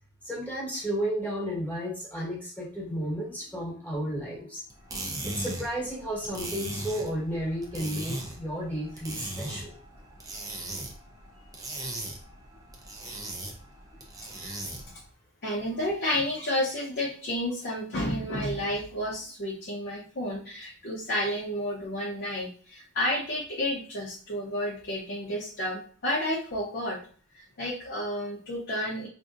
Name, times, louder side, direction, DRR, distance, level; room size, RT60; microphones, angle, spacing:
voice 1, 0.2-4.6 5.2-9.7, equal, 5° left, -6 dB, 1.2 m, -32 dB
sound 1, 4.7-15.0, right 2 dB, 15° right, 0.5 m, -39 dB
voice 2, 15.4-27.1 27.3-29.1, left 1 dB, 45° left, -3 dB, 0.6 m, -31 dB
3.8 x 2.7 x 2.4 m, 0.43 s
head